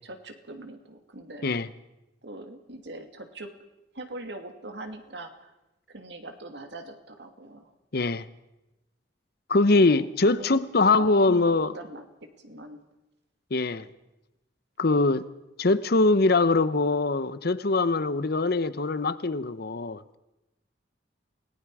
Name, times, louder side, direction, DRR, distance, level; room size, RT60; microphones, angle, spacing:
voice 1, 0.0-1.5 2.2-3.5 3.9-5.5 5.9-7.7 9.8-10.0 10.2-12.8, right 2 dB, 70° right, 5 dB, 2.5 m, -42 dB
voice 2, 7.9-8.2 9.5-11.7 13.5-13.8 14.8-15.3 15.6-20.0, left 3 dB, 60° left, 14 dB, 0.9 m, -22 dB
28.5 x 19.5 x 4.9 m, 0.97 s
head